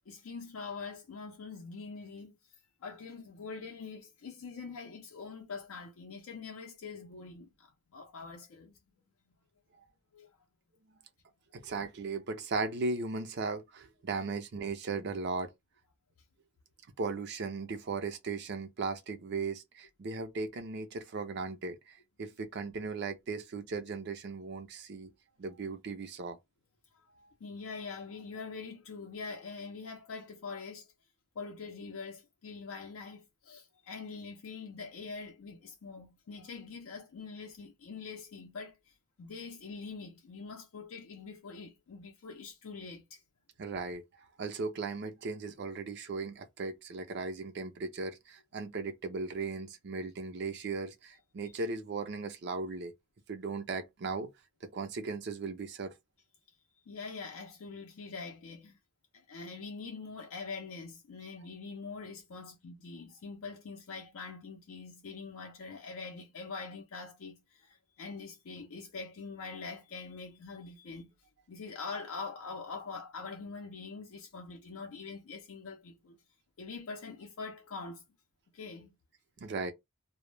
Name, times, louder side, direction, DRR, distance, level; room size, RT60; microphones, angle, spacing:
voice 1, 0.1-2.4 2.8-8.8 10.1-10.3 11.6-11.7 27.4-30.9 31.4-43.2 56.9-58.8 59.1-71.1 71.5-76.2 76.6-78.0 78.5-78.9, left 4 dB, 80° left, 0.4 m, -44 dB
voice 2, 11.5-15.5 17.0-25.1 25.4-26.4 43.6-44.0 44.4-52.9 53.3-54.3 54.6-55.9 79.4-79.7, right 4 dB, 55° right, 0.4 m, -37 dB
2.0 x 2.0 x 3.1 m
head